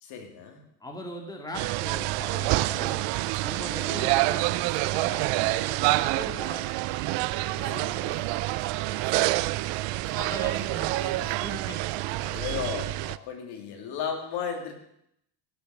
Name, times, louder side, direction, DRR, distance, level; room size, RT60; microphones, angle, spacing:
voice 1, 0.0-0.6 3.9-4.3 7.6-8.2 9.0-9.6 12.2-14.7, left 7 dB, 65° left, 4 dB, 3.0 m, -36 dB
voice 2, 0.8-3.1 3.4-6.8 7.4-8.2 10.1-12.0, equal, 10° left, 2 dB, 2.1 m, -40 dB
sound 1, 1.5-13.2, right 19 dB, 75° right, 0.6 m, -27 dB
sound 2, 2.0-13.1, right 7 dB, 30° right, 1.5 m, -47 dB
17.0 x 7.1 x 7.7 m, 0.74 s
cardioid pair, 155°, 43 cm